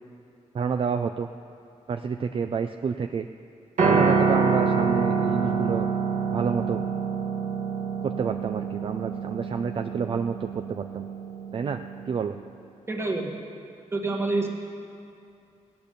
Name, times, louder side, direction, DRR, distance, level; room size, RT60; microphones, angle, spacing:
voice 1, 0.5-1.3 1.9-3.3 3.8-5.9 6.3-6.8 8.0-11.1 11.5-12.4, right 6 dB, 45° right, 8 dB, 0.4 m, -29 dB
Piano, 3.8-12.0, right 5 dB, 70° right, 1.8 m, -26 dB
voice 2, 12.9-13.3 13.9-14.5, right 2 dB, 20° right, 0 dB, 1.6 m, -27 dB
18.5 x 8.8 x 6.8 m, 2.6 s
wide cardioid pair, 140°, 13 cm